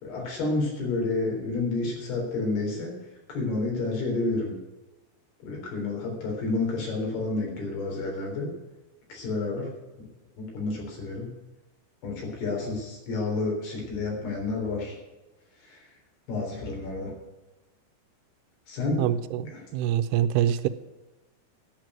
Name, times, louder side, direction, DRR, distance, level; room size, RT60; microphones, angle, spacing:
voice 1, 0.0-2.9 3.3-4.5 5.4-8.5 9.1-9.7 10.0-10.1 10.4-11.3 12.0-15.0 15.6-15.8 16.3-17.1 18.7-19.0, left 3 dB, 70° left, -1 dB, 5.7 m, -30 dB
voice 2, 19.0-20.7, right 10 dB, 85° right, 11 dB, 2.6 m, -25 dB
11.5 x 7.7 x 9.0 m, 1.1 s
omnidirectional pair, 4.8 m